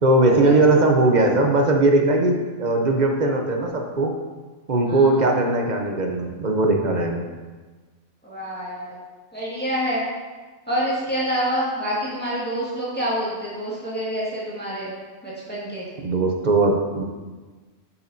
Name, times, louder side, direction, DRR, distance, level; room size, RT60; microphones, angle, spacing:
voice 1, 0.0-4.1 4.7-7.3 16.0-17.0, right 2 dB, 45° right, 2 dB, 0.7 m, -19 dB
voice 2, 4.9-5.2 8.2-9.0 9.3-10.0 10.7-14.9 15.2-15.9, equal, 10° left, -8 dB, 1.7 m, -27 dB
8.4 x 5.7 x 2.7 m, 1.3 s
omnidirectional pair, 1.3 m